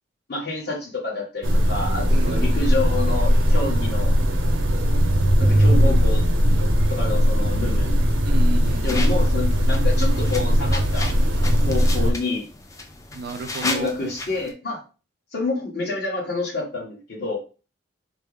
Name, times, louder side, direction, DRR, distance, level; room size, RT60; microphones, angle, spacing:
voice 1, 0.3-4.1 5.4-6.3 6.9-8.0 8.8-11.1 11.4-12.4 13.6-14.8 15.3-17.4, left 2 dB, 55° left, -3 dB, 1.4 m, -28 dB
sound 1, 1.4-12.1, equal, 85° right, 0.8 m, -19 dB
voice 2, 2.1-2.5 8.3-9.0 13.1-13.9, right 3 dB, 50° right, 5 dB, 0.4 m, -33 dB
sound 2, 8.6-14.5, left 2 dB, 15° left, 0.4 m, -34 dB
4.4 x 2.0 x 3.5 m, 0.33 s
head